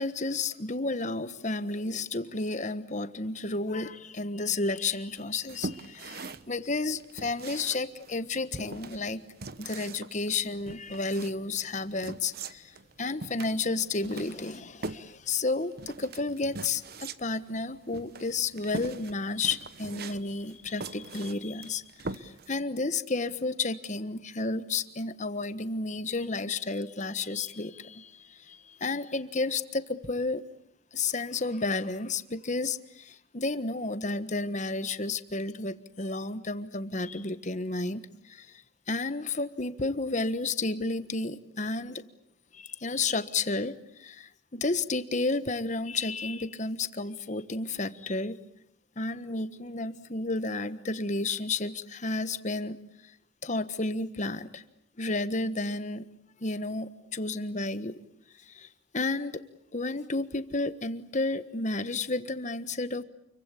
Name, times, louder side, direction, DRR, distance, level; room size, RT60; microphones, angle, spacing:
voice 1, 0.0-9.2 9.6-30.4 30.9-42.0 42.5-48.4 49.0-53.1 53.4-54.6 55.0-56.0 56.4-58.0 58.4-59.4 59.7-63.0, left 3 dB, 40° left, 12 dB, 1.4 m, -32 dB
sound 1, 5.1-22.6, right 3 dB, 55° right, 1.1 m, -42 dB
29.0 x 23.5 x 8.5 m, 0.74 s
head